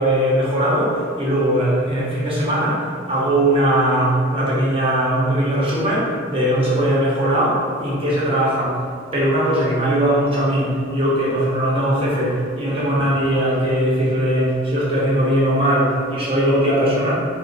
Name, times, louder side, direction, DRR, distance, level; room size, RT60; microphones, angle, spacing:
voice 1, 0.0-8.8 9.1-17.1, right 1 dB, 30° right, -7 dB, 1.1 m, -19 dB
3.8 x 2.7 x 4.1 m, 2.2 s
head